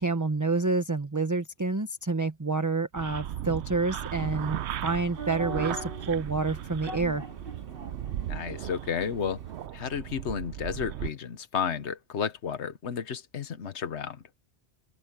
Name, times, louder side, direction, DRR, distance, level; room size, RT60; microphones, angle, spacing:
voice 1, 0.0-7.2, right 3 dB, 20° right, 0.8 m, -28 dB
sound 1, 2.9-11.1, right 11 dB, 80° right, 0.9 m, -37 dB
sound 2, 4.0-9.7, right 3 dB, 55° right, 2.2 m, -43 dB
voice 2, 8.3-9.4 9.7-14.2, left 7 dB, 80° left, 1.3 m, -32 dB
open air
omnidirectional pair, 1.1 m